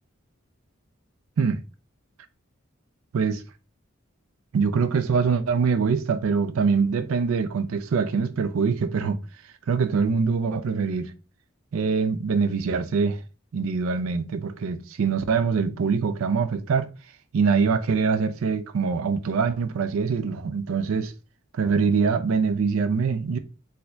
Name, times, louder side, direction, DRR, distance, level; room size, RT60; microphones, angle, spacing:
voice 1, 4.5-9.2 9.7-11.1 11.7-13.2 13.5-16.9 17.3-21.1 21.5-23.4, right 5 dB, 80° right, 0.4 m, -24 dB
4.2 x 2.7 x 2.2 m
head